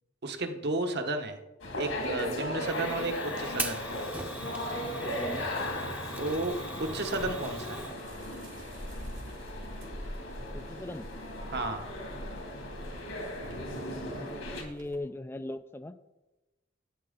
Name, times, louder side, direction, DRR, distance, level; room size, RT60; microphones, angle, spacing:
voice 1, 0.2-1.4 1.8-3.8 6.2-7.9 11.5-11.9, right 2 dB, 60° right, 5 dB, 1.1 m, -33 dB
sound 1, 1.6-14.6, left 1 dB, 75° left, 2.3 m, -37 dB
Fire, 2.6-7.9, right 2 dB, 10° right, 0.7 m, -40 dB
voice 2, 3.0-3.6 5.0-5.4 10.5-11.1 13.6-16.0, left 2 dB, 10° left, 10 dB, 0.3 m, -41 dB
sound 2, 4.9-15.0, equal, 90° right, 2.4 m, -46 dB
12.0 x 8.4 x 3.8 m, 1.0 s
head